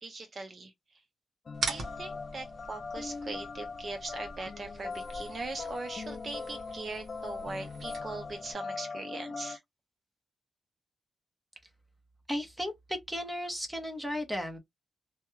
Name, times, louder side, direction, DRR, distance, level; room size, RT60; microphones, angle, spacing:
voice 1, 0.0-1.0 1.7-9.6, right 3 dB, 35° right, 0.5 m, -41 dB
sound 1, 1.5-9.6, left 4 dB, 35° left, 0.3 m, -41 dB
sound 2, 1.5-8.5, right 3 dB, 55° right, 1.2 m, -43 dB
voice 2, 12.3-14.6, equal, 5° right, 0.8 m, -35 dB
3.3 x 2.2 x 3.0 m
wide cardioid pair, 175°, 0 cm